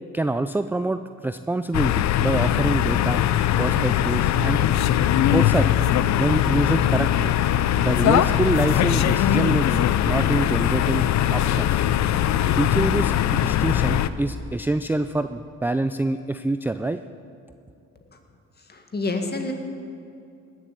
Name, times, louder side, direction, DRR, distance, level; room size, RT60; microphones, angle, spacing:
voice 1, 0.1-3.3 3.6-4.6 5.3-5.7 6.2-7.3 7.8-11.0 11.3-11.8 12.6-17.0, right 2 dB, 5° right, 10 dB, 0.4 m, -26 dB
sound 1, 1.7-14.1, left 11 dB, 65° left, 0.6 m, -21 dB
voice 2, 18.7-19.5, left 2 dB, 35° left, 4 dB, 2.0 m, -27 dB
19.0 x 7.4 x 8.6 m, 2.5 s
cardioid pair, 90°, 30 cm